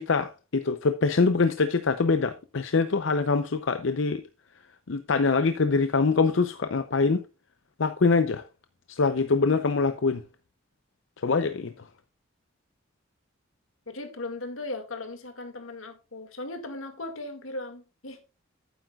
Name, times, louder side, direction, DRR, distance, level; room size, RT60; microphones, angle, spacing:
voice 1, 0.0-4.2 4.9-7.2 7.8-8.4 8.9-10.2 11.2-11.7, left 4 dB, 65° left, 0.6 m, -24 dB
voice 2, 13.9-18.2, left 2 dB, 85° left, 2.0 m, -37 dB
12.0 x 9.3 x 2.4 m
head